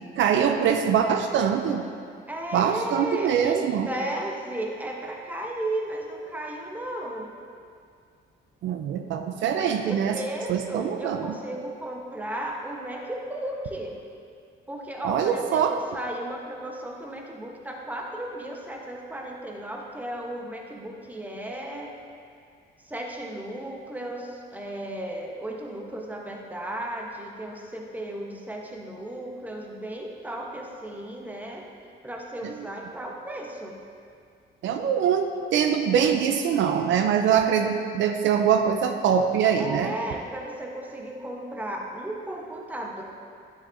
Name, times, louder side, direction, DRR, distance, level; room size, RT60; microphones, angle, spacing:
voice 1, 0.2-1.9 2.5-3.9 8.6-10.2 10.5-11.4 15.0-15.8 32.4-32.5 34.6-39.9, right 8 dB, 75° right, 6 dB, 0.5 m, -23 dB
voice 2, 2.3-7.3 9.5-13.9 14.7-22.0 22.8-31.6 32.0-33.8 39.6-43.0, right 1 dB, 10° right, 0 dB, 0.9 m, -35 dB
9.9 x 5.9 x 2.6 m, 2.3 s
cardioid pair, 90°, 20 cm